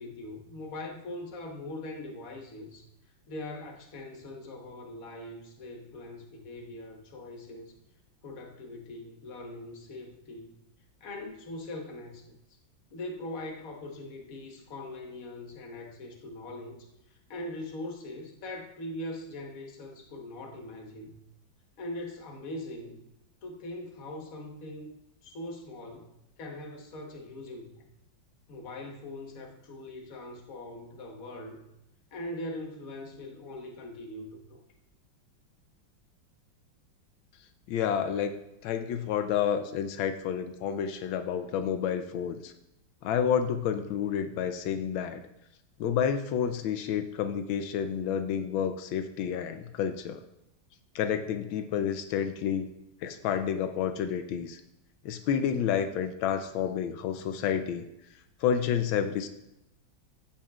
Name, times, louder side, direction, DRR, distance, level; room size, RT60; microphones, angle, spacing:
voice 1, 0.0-2.9 3.3-7.8 8.2-10.6 11.0-12.4 12.9-21.2 21.8-23.0 23.4-24.9 25.2-26.1 26.4-27.8 28.5-31.7 32.1-34.6, left 1 dB, 50° left, 1 dB, 1.4 m, -41 dB
voice 2, 37.7-38.4 38.6-42.5 43.0-45.2 45.8-50.2 50.9-52.7 53.0-54.6 55.0-57.9 58.4-59.3, left 8 dB, 85° left, 8 dB, 1.4 m, -29 dB
15.0 x 5.6 x 2.3 m, 0.87 s
omnidirectional pair, 2.1 m